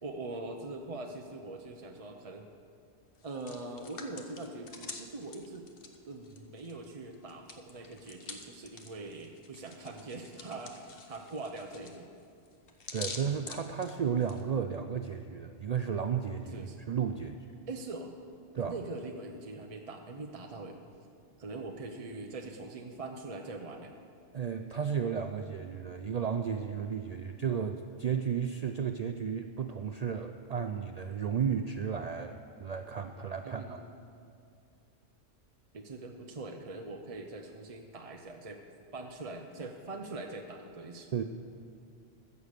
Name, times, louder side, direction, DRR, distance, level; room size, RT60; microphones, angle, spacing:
voice 1, 0.0-2.5 3.2-5.7 6.1-12.1 16.5-16.8 17.7-18.1 18.6-20.8 21.4-23.9 33.4-33.9 35.7-38.6 38.9-41.1, right 2 dB, 35° right, 2 dB, 0.6 m, -42 dB
Hands, 3.1-6.8 7.1-14.4, left 4 dB, 55° left, 1.1 m, -47 dB
voice 2, 12.9-17.4 18.5-18.7 24.3-33.8 41.1-41.2, right 7 dB, 80° right, 6 dB, 0.3 m, -33 dB
15.0 x 6.9 x 6.6 m, 2.4 s
omnidirectional pair, 1.2 m